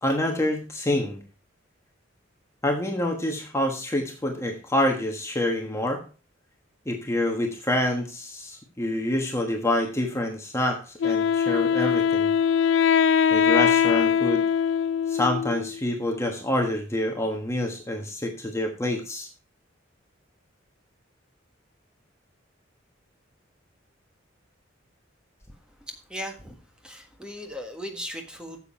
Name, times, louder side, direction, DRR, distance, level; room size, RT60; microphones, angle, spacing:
voice 1, 0.0-1.2 2.6-6.0 6.8-12.3 13.3-14.5 15.1-19.3, left 1 dB, 15° left, 2 dB, 1.2 m, -27 dB
Wind instrument woodwind instrument, 11.0-15.8, left 7 dB, 70° left, 0.3 m, -22 dB
voice 2, 26.1-26.5 26.8-28.6, equal, 5° right, 3 dB, 1.5 m, -37 dB
9.2 x 7.4 x 4.5 m, 0.36 s
head